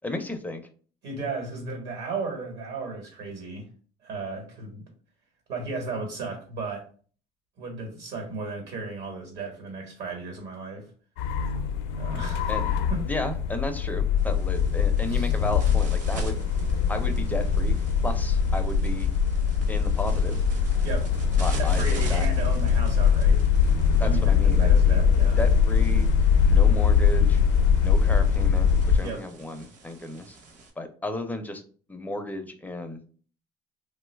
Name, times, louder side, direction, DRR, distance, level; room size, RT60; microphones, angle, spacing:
voice 1, 0.0-0.6 12.5-12.7 13.0-16.4 16.9-17.8 18.0-19.1 19.7-20.4 21.4-22.3 24.0-25.0 25.4-26.1 26.5-27.4 27.8-30.4 30.8-31.6 31.9-33.0, left 2 dB, 10° left, 6 dB, 0.4 m, -34 dB
voice 2, 1.0-3.7 4.0-4.9 5.5-6.9 7.6-10.9 12.0-12.6 12.9-13.0 15.1-15.3 20.8-21.1 21.6-23.4 24.0-25.4 29.0-29.2, right 3 dB, 65° right, 1 dB, 1.2 m, -35 dB
sound 1, 11.2-29.0, left 6 dB, 85° left, 0.4 m, -22 dB
sound 2, 14.2-30.7, right 3 dB, 45° right, 0.7 m, -45 dB
sound 3, 23.7-27.7, left 2 dB, 80° right, 0.5 m, -43 dB
2.9 x 2.2 x 3.2 m, 0.41 s
cardioid pair, 115°, 18 cm